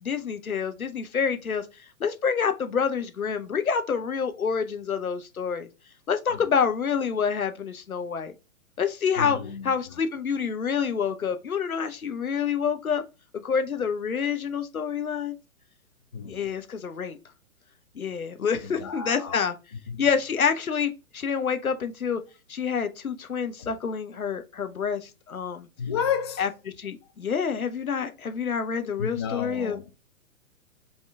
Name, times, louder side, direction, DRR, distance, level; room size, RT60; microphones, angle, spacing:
voice 1, 0.0-5.7 6.1-8.3 8.8-9.4 9.6-13.0 13.4-15.3 16.3-17.2 18.0-19.5 20.0-22.2 22.5-25.7 26.4-26.5 26.8-29.8, left 6 dB, 85° left, 0.7 m, -27 dB
voice 2, 9.2-10.0 16.1-16.5 18.6-19.5 19.9-20.1 23.6-23.7 25.8-26.5 29.0-29.9, left 7 dB, 20° left, 0.4 m, -32 dB
5.4 x 2.9 x 3.4 m
figure-of-eight pair, 115°, 41 cm